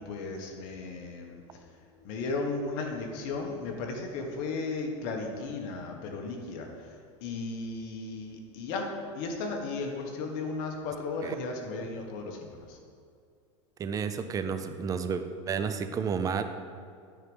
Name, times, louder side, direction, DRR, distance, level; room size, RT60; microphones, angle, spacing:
voice 1, 0.0-1.6 2.0-6.9 7.2-12.8, left 3 dB, 55° left, 2 dB, 1.4 m, -35 dB
voice 2, 13.8-16.4, right 6 dB, 20° right, 9 dB, 0.5 m, -31 dB
9.4 x 4.7 x 5.4 m, 2.3 s
supercardioid pair, 130°, 16 cm